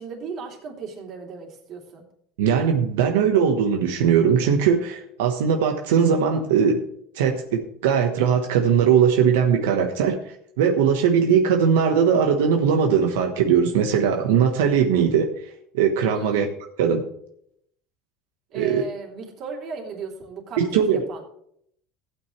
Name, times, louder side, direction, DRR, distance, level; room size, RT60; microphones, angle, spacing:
voice 1, 0.0-2.0 16.1-16.5 18.5-21.2, right 5 dB, 45° right, 0 dB, 3.2 m, -36 dB
voice 2, 2.4-6.8 7.1-15.3 15.7-16.5 16.8-17.0 18.5-18.8 20.6-21.0, right 7 dB, 90° right, 4 dB, 1.2 m, -20 dB
15.5 x 8.8 x 3.3 m, 0.69 s
supercardioid pair, 130°, 0 cm